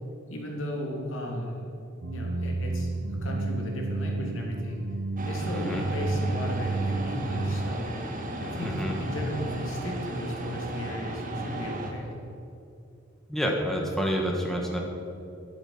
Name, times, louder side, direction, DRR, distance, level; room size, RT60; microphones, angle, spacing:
voice 1, 0.3-1.6 2.1-2.9 3.2-4.8 5.2-7.9 8.4-12.1, equal, 80° left, -1 dB, 3.0 m, -35 dB
sound 1, 2.0-7.8, right 2 dB, 65° right, 0.7 m, -31 dB
sound 2, 5.2-11.9, right 2 dB, 40° right, 1.6 m, -36 dB
voice 2, 8.6-9.0 13.3-14.8, equal, ahead, -1 dB, 1.5 m, -28 dB
12.5 x 11.0 x 6.0 m, 2.6 s
head